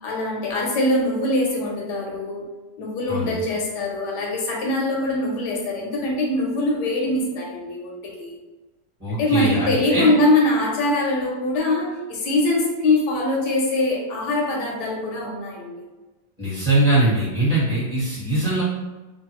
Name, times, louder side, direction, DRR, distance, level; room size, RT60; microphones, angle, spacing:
voice 1, 0.0-2.5 2.8-8.3 9.1-15.8, left 2 dB, 80° left, -1 dB, 1.2 m, -23 dB
voice 2, 9.0-10.1 16.4-18.6, right 1 dB, 25° right, -9 dB, 1.2 m, -21 dB
3.1 x 2.3 x 2.9 m, 1.2 s
omnidirectional pair, 1.8 m